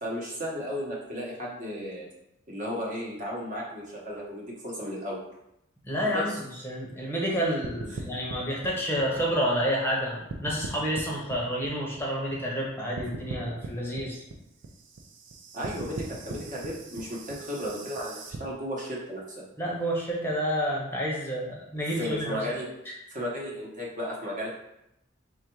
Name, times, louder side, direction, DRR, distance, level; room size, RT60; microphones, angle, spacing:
voice 1, 0.0-2.1 2.5-5.2 6.0-6.4 7.9-8.0 15.5-19.4 22.0-22.7 23.1-24.5, equal, 40° right, -4 dB, 1.0 m, -34 dB
voice 2, 5.8-6.3 6.6-14.2 19.6-22.4, equal, 10° left, -4 dB, 0.8 m, -29 dB
sound 1, 7.6-10.0 10.3-12.7 13.0-18.4, right 3 dB, 65° right, 0.5 m, -40 dB
3.4 x 2.5 x 4.5 m, 0.83 s
head